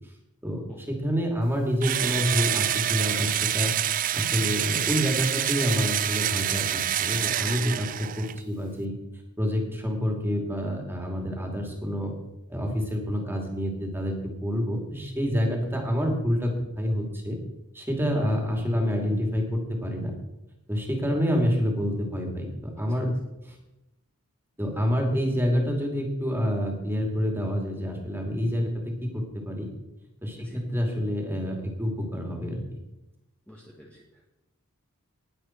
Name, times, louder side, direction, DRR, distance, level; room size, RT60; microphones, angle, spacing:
voice 1, 0.9-3.7 4.1-9.0 9.4-12.1 12.5-16.5 16.8-17.4 17.7-20.1 20.7-23.1 23.4-23.6 24.6-29.7 30.2-32.6, equal, 10° right, 1 dB, 2.5 m, -27 dB
Engine / Drill, 1.8-8.4, right 11 dB, 40° right, 0.4 m, -27 dB
voice 2, 22.8-23.1 30.4-30.6 33.5-34.3, left 1 dB, 5° left, -3 dB, 1.6 m, -47 dB
19.5 x 7.8 x 4.5 m, 0.94 s
head